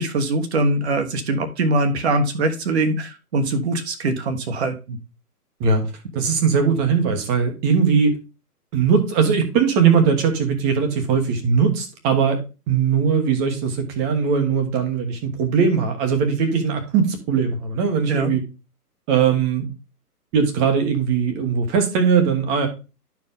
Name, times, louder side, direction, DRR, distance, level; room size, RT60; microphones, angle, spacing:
voice 1, 0.0-5.0 18.1-18.3, right 2 dB, 45° right, 8 dB, 1.2 m, -22 dB
voice 2, 6.1-8.2 8.7-12.4 12.7-18.4 19.1-19.7 20.3-22.7, right 6 dB, 20° right, 5 dB, 1.1 m, -20 dB
11.5 x 4.7 x 3.6 m, 0.31 s
figure-of-eight pair, 135°, 47 cm